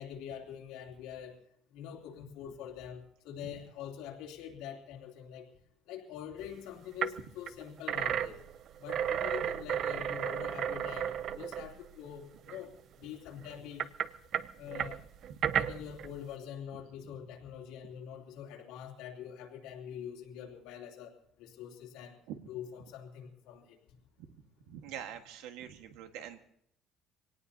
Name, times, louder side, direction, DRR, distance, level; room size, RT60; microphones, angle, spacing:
voice 1, 0.0-1.3 1.7-5.5 5.9-8.4 8.8-13.8 14.6-15.0 15.5-22.2 22.5-23.8, left 9 dB, 85° left, 0 dB, 3.0 m, -44 dB
sound 1, 6.4-6.5 7.0-7.2 7.5-12.1 12.5-12.6 13.4-16.1, right 9 dB, 45° right, 0.5 m, -33 dB
voice 2, 24.7-26.4, right 10 dB, 90° right, 7 dB, 1.5 m, -44 dB
25.0 x 18.0 x 2.8 m, 0.68 s
cardioid pair, 150°, 0 cm